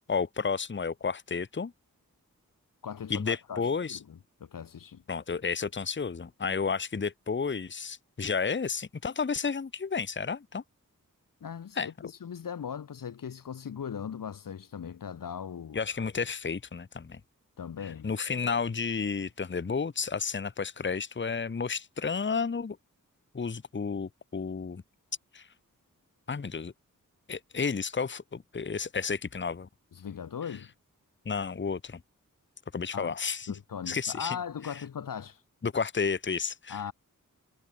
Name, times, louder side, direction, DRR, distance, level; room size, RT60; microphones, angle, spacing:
voice 1, 0.1-1.7 3.1-4.0 5.1-10.6 11.8-11.9 15.7-17.2 17.8-22.8 23.3-24.8 25.3-25.5 26.3-26.7 27.3-29.7 31.3-32.0 32.7-33.6 33.9-34.4 34.6-34.7 35.6-36.9, left 5 dB, 35° left, 0.9 m, -32 dB
voice 2, 2.8-3.6 3.9-5.0 11.4-15.8 17.6-18.1 29.9-30.7 32.9-33.1 33.5-35.4 36.7-36.9, left 7 dB, 75° left, 1.1 m, -39 dB
cardioid pair, 45°, 34 cm